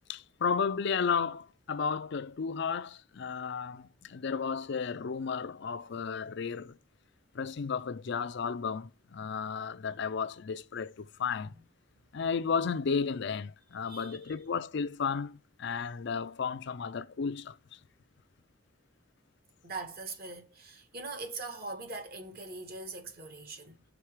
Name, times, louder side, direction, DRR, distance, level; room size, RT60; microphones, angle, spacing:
voice 1, 0.1-6.8 7.3-11.5 12.1-17.5, left 6 dB, 60° left, 0.4 m, -33 dB
voice 2, 13.8-14.3 19.6-23.8, right 3 dB, 50° right, 1.5 m, -42 dB
5.9 x 3.9 x 4.9 m
head